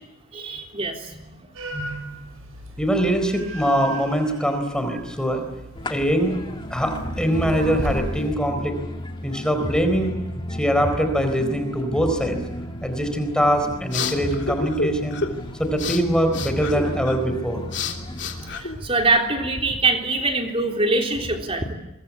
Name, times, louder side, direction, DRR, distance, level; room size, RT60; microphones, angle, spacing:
voice 1, 0.3-1.3 1.7-2.3 18.5-21.7, right 3 dB, 25° right, 3 dB, 3.6 m, -24 dB
sound 1, 1.5-8.4, equal, 75° right, 6.5 m, -36 dB
voice 2, 2.8-5.4 5.9-6.3 6.7-8.7 9.2-10.2 10.5-12.4 12.8-15.2 15.6-17.7, equal, 5° left, 6 dB, 4.2 m, -23 dB
sound 2, 5.7-18.6, equal, 20° left, 2.1 m, -33 dB
sound 3, 13.4-19.3, left 4 dB, 55° left, 3.2 m, -31 dB
28.0 x 23.5 x 8.5 m, 0.95 s
head